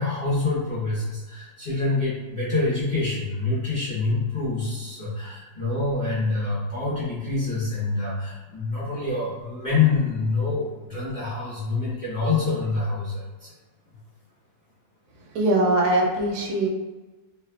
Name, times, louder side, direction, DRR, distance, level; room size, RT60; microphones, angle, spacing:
voice 1, 0.0-13.5, left 3 dB, 35° left, -11 dB, 0.8 m, -26 dB
voice 2, 15.3-16.7, right 1 dB, 80° right, -2 dB, 1.1 m, -21 dB
3.3 x 2.1 x 2.2 m, 1.2 s
omnidirectional pair, 1.7 m